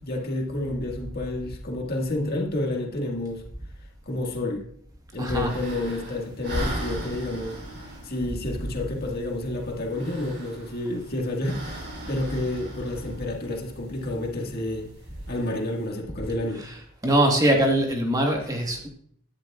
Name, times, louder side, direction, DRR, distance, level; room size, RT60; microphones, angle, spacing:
voice 1, 0.0-3.4 4.1-4.7 5.1-7.6 8.0-14.9 15.3-16.6, left 1 dB, 45° left, 1.8 m, -30 dB
voice 2, 5.2-5.5 16.6-18.9, right 1 dB, 15° right, 1.4 m, -23 dB
sound 1, 5.2-15.9, right 1 dB, 55° right, 5.0 m, -39 dB
17.0 x 10.5 x 2.4 m
head